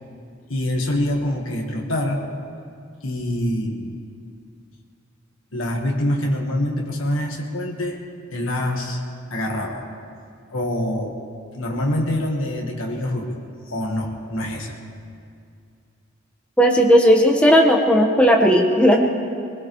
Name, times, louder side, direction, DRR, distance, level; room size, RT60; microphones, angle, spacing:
voice 1, 0.5-2.2 3.0-4.0 5.5-8.0 8.3-9.0 9.3-9.8 10.5-11.1 11.5-14.8, left 1 dB, 75° left, 0 dB, 1.5 m, -25 dB
voice 2, 16.6-19.0, equal, 5° left, 0 dB, 1.3 m, -15 dB
21.5 x 19.5 x 3.2 m, 2.3 s
head